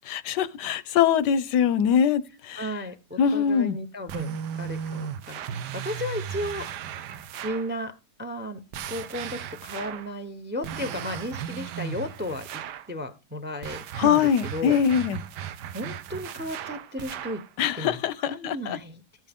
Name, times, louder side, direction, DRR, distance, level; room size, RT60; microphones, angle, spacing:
voice 1, 0.1-2.2 2.5-2.7 3.2-3.8 14.0-15.2 17.6-18.8, left 8 dB, 85° left, 1.3 m, -23 dB
voice 2, 2.6-6.6 7.4-7.9 8.2-8.6 8.9-12.5 12.9-14.8 15.7-17.4 17.7-19.0, left 1 dB, 10° right, 0.5 m, -34 dB
sound 1, 4.1-7.7 8.7-10.1 10.6-12.9 13.6-17.5, right 8 dB, 85° right, 1.3 m, -36 dB
14.0 x 7.5 x 3.6 m
omnidirectional pair, 1.8 m